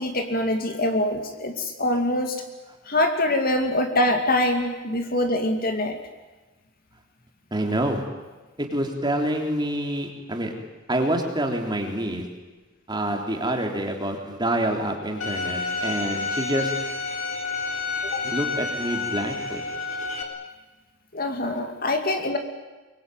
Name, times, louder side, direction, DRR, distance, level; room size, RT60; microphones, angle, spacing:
voice 1, 0.0-2.4 2.9-6.0 18.1-18.2 21.1-22.4, left 1 dB, 45° left, 5 dB, 2.6 m, -24 dB
voice 2, 7.5-8.0 8.6-10.5 10.9-12.3 12.9-16.8 18.2-19.6, right 1 dB, 20° right, 2 dB, 3.5 m, -27 dB
Bowed string instrument, 15.2-20.2, left 4 dB, 70° left, 3.9 m, -29 dB
24.0 x 23.0 x 9.3 m, 1.2 s
head